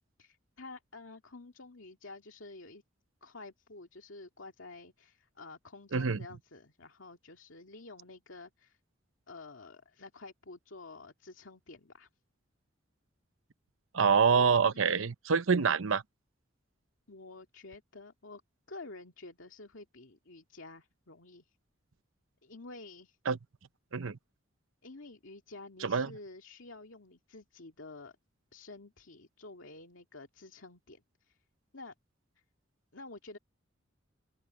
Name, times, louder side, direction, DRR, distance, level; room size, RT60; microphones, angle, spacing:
voice 1, 0.2-2.8 3.2-8.8 9.3-12.1 14.7-15.1 17.1-18.4 18.7-21.6 22.4-23.2 24.8-28.2 28.5-31.4 31.7-31.9 32.9-33.4, left 3 dB, 80° left, 2.2 m, -50 dB
voice 2, 13.9-16.0 23.3-23.4 23.9-24.2 25.8-26.1, right 5 dB, 85° right, 0.8 m, -26 dB
open air
head